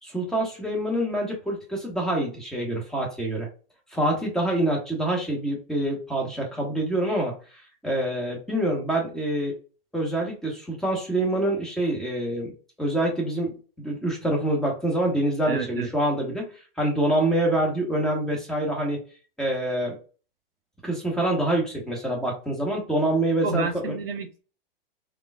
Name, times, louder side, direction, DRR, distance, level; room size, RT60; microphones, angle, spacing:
voice 1, 0.0-3.5 3.9-7.3 7.8-9.5 9.9-12.5 12.8-16.5 16.8-19.0 19.4-20.0 20.8-23.9, right 1 dB, ahead, 1.2 m, -26 dB
voice 2, 15.5-15.9 23.4-24.4, right 5 dB, 75° right, 0.7 m, -30 dB
3.6 x 2.3 x 2.3 m
figure-of-eight pair, 105°, 30 cm